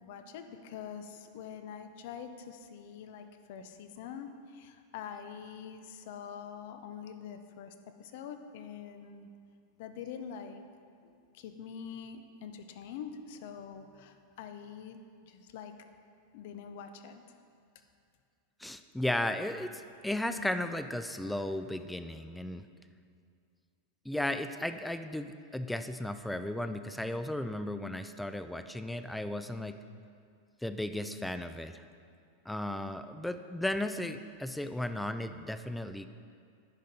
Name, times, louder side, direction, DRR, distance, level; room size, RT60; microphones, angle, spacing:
voice 1, 0.0-9.3 9.8-10.6 11.0-15.7 16.3-17.2, left 7 dB, 65° left, 8 dB, 0.6 m, -45 dB
voice 2, 18.6-22.6 24.0-29.8 30.6-31.8 32.5-36.1, left 1 dB, 5° left, 10 dB, 0.4 m, -35 dB
10.5 x 5.2 x 4.1 m, 2.3 s
hypercardioid pair, 105°, 0 cm